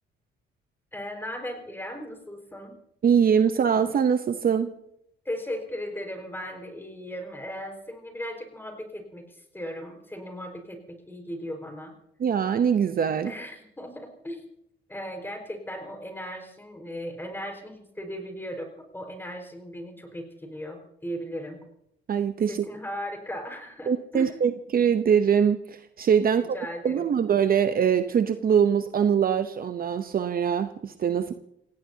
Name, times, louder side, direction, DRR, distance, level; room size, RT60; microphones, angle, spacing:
voice 1, 0.9-2.7 5.2-10.8 11.1-11.9 13.2-14.4 14.9-21.6 22.5-24.3 26.3-27.1, equal, 10° left, 3 dB, 4.8 m, -37 dB
voice 2, 3.0-4.7 12.2-13.3 22.1-22.6 23.9-26.6 26.8-31.3, right 7 dB, 45° right, 9 dB, 0.8 m, -23 dB
28.5 x 17.0 x 2.8 m, 0.77 s
cardioid pair, 90°, 20 cm